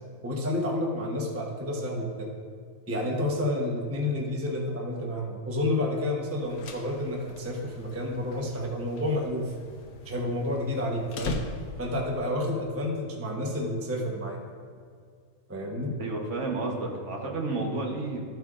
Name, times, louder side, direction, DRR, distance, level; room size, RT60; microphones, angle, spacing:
voice 1, 0.2-2.3 2.9-9.5 10.0-11.4 11.8-14.4 15.5-15.9, left 1 dB, 10° right, 0 dB, 0.8 m, -30 dB
sound 1, 6.3-12.1, left 3 dB, 80° left, 1.2 m, -40 dB
voice 2, 16.0-18.2, right 2 dB, 55° right, 0 dB, 1.3 m, -31 dB
13.5 x 7.7 x 2.5 m, 2.2 s
omnidirectional pair, 1.6 m